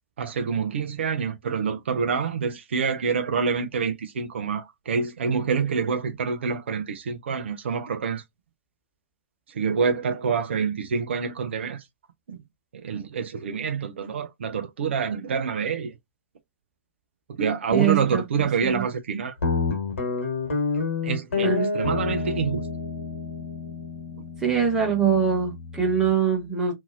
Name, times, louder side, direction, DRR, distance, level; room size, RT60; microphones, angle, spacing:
voice 1, 0.2-8.2 9.5-11.8 12.7-15.9 17.4-19.3 21.0-22.7, right 6 dB, 60° right, 0.5 m, -27 dB
voice 2, 17.7-18.8 21.4-21.7 24.4-26.7, right 7 dB, 10° right, 1.3 m, -23 dB
Guitar, 19.4-26.1, left 4 dB, 65° left, 1.3 m, -29 dB
2.8 x 2.5 x 2.6 m
figure-of-eight pair, 110°, 7 cm